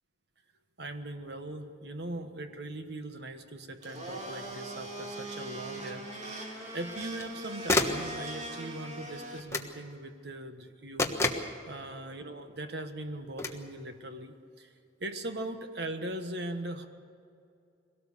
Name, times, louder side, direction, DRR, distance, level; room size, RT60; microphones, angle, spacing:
voice 1, 0.8-14.7 15.0-16.9, right 1 dB, 65° right, 7 dB, 1.5 m, -40 dB
Domestic sounds home sounds, 3.8-9.4, right 1 dB, 40° right, 2.7 m, -41 dB
sound 1, 4.4-4.5 6.9-7.3 7.7-8.1 9.5-9.8 11.0-11.5 13.4-13.6, left 2 dB, 15° left, 1.3 m, -29 dB
22.5 x 17.5 x 6.9 m, 2.5 s
head